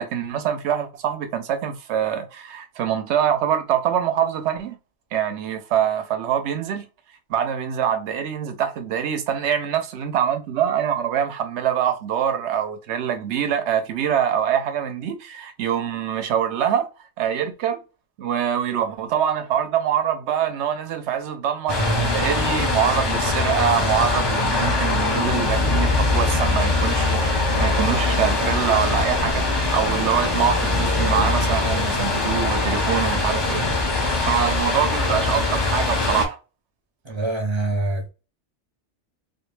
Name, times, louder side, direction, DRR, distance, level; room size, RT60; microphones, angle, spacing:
voice 1, 0.0-4.8 5.1-6.9 7.3-16.9 17.2-17.8 18.2-33.6 34.2-36.4, right 9 dB, 80° right, 0.9 m, -24 dB
sound 1, 21.7-36.3, left 2 dB, 25° left, 0.6 m, -22 dB
voice 2, 37.1-38.1, right 2 dB, 30° right, 0.6 m, -25 dB
2.3 x 2.2 x 3.0 m
omnidirectional pair, 1.2 m